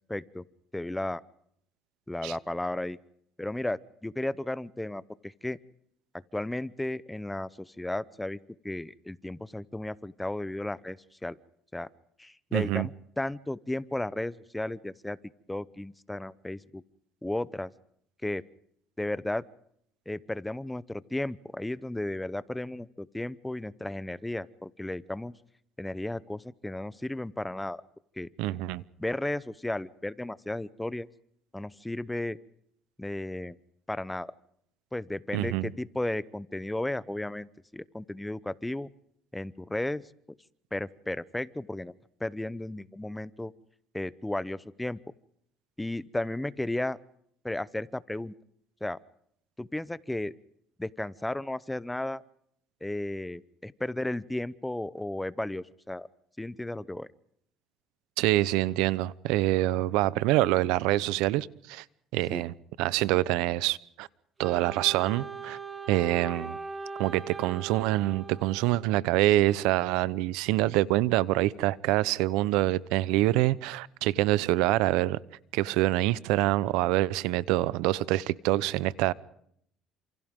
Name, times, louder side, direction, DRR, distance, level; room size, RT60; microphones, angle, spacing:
voice 1, 0.1-0.4 0.7-1.2 2.1-3.0 3.4-5.6 6.3-8.4 8.6-11.4 11.7-11.9 12.2-15.2 15.5-16.8 17.2-17.7 18.2-18.4 19.0-19.4 20.1-25.3 25.8-27.8 28.2-28.3 29.0-31.1 31.5-32.4 33.0-33.6 33.9-34.3 34.9-38.9 39.3-40.0 40.7-41.9 42.2-43.5 43.9-45.0 45.8-47.0 47.4-48.3 48.8-49.0 49.6-50.3 50.8-52.2 52.8-56.1 56.4-57.1 62.3-62.4, left 1 dB, 5° left, 0.8 m, -34 dB
voice 2, 12.5-12.9 28.4-28.8 35.3-35.7 58.2-61.8 62.1-64.1 64.4-65.6 65.9-66.6 67.0-75.2 75.5-79.1, right 16 dB, 80° right, 0.8 m, -26 dB
Wind instrument woodwind instrument, 64.4-69.0, right 4 dB, 15° right, 1.4 m, -40 dB
29.5 x 27.5 x 3.7 m
cardioid pair, 120°, 0 cm